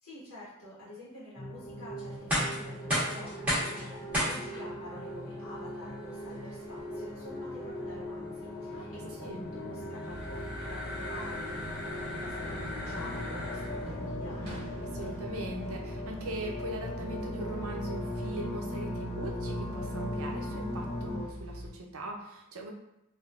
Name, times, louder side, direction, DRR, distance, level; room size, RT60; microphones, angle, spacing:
voice 1, 0.0-14.6, left 1 dB, 85° left, -9 dB, 1.2 m, -48 dB
sound 1, 1.4-21.2, left 1 dB, 20° left, 0.6 m, -39 dB
sound 2, 2.1-14.0, equal, 5° right, 1.2 m, -37 dB
sound 3, 10.1-21.7, equal, 45° right, 1.3 m, -44 dB
voice 2, 14.9-22.7, right 1 dB, 85° right, 1 dB, 0.6 m, -40 dB
3.5 x 2.6 x 2.4 m, 0.85 s
head